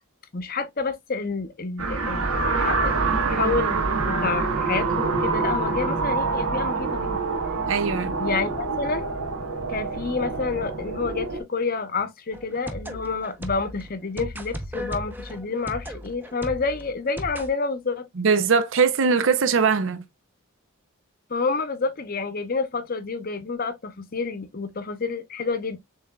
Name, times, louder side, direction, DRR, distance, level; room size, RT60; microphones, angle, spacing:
voice 1, 0.3-7.2 8.2-9.1 9.7-18.1 21.3-25.8, left 4 dB, 40° left, 0.7 m, -29 dB
sound 1, 1.8-11.4, right 4 dB, 75° right, 1.3 m, -26 dB
voice 2, 7.7-8.2 18.2-20.0, right 5 dB, 60° right, 0.5 m, -21 dB
sound 2, 12.3-17.5, equal, 10° right, 0.6 m, -36 dB
6.9 x 3.3 x 2.2 m
head